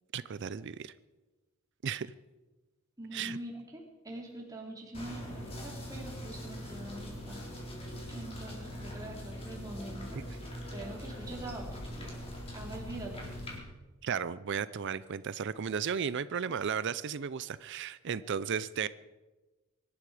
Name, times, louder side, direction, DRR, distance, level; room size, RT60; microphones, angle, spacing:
voice 1, 0.1-0.9 1.8-2.1 3.1-3.4 14.0-18.9, right 7 dB, 55° right, 16 dB, 0.5 m, -34 dB
voice 2, 3.0-7.4 8.1-10.2 10.7-12.2 12.5-13.5, right 1 dB, 15° right, -2 dB, 3.0 m, -44 dB
sound 1, 4.9-13.6, equal, 25° left, 3.8 m, -42 dB
24.0 x 12.5 x 4.9 m, 1.2 s
head